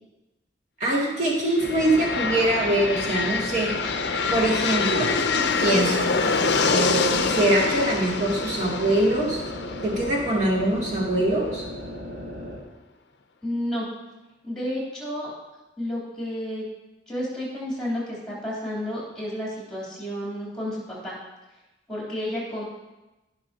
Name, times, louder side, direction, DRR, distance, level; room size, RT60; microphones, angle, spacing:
voice 1, 0.8-3.7 4.3-5.1 5.6-6.0 6.7-9.4 9.8-11.6, right 1 dB, 40° right, -5 dB, 2.4 m, -23 dB
sound 1, 1.5-11.3, left 4 dB, 60° left, 0.6 m, -26 dB
sound 2, 1.6-12.6, equal, 80° right, 2.2 m, -36 dB
voice 2, 13.4-13.9 14.4-15.3 15.8-16.6 17.1-21.1 21.9-22.6, left 1 dB, 5° left, -6 dB, 3.2 m, -31 dB
15.5 x 5.8 x 2.8 m, 1.0 s
head